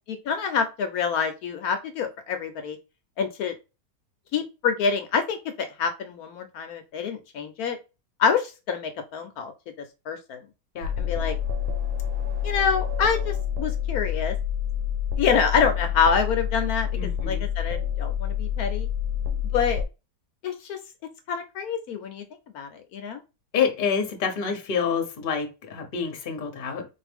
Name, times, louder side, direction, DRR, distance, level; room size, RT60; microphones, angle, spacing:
voice 1, 0.3-2.8 3.2-3.5 4.3-7.8 8.2-9.5 10.1-10.4 11.0-11.4 12.4-14.4 15.2-16.9 17.3-18.9 19.5-19.8 20.4-20.8 21.3-22.2 22.5-23.2, left 6 dB, 75° left, 1.0 m, -26 dB
sound 1, 10.8-19.8, left 9 dB, 85° right, 1.3 m, -28 dB
voice 2, 16.9-17.4 23.5-26.9, left 6 dB, 45° left, 0.9 m, -27 dB
4.0 x 2.6 x 3.4 m
omnidirectional pair, 1.7 m